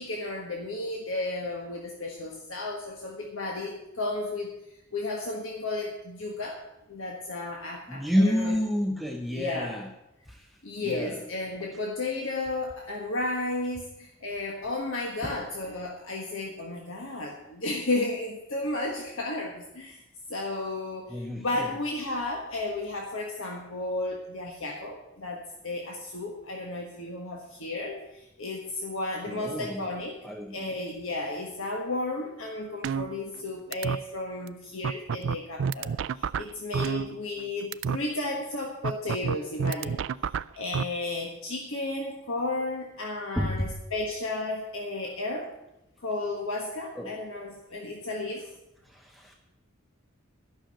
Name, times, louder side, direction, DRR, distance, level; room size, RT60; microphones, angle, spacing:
voice 1, 0.0-4.5 4.9-6.6 6.9-8.6 9.3-9.8 10.6-20.0 20.3-30.2 30.5-40.0 40.6-45.5 46.0-48.4, left 2 dB, 70° left, 0 dB, 1.5 m, -33 dB
voice 2, 7.9-9.9 10.3-10.5 10.8-11.2 15.2-15.3 21.1-21.7 29.3-29.9 30.2-30.7 43.4-43.7 47.0-47.2 48.9-49.3, equal, ahead, 1 dB, 0.7 m, -29 dB
sound 1, 32.8-33.4 33.7-34.0 34.5-34.6 34.8-37.4 37.7-38.0 38.8-40.8, right 6 dB, 60° right, 0.3 m, -29 dB
11.5 x 6.3 x 8.9 m, 0.91 s
head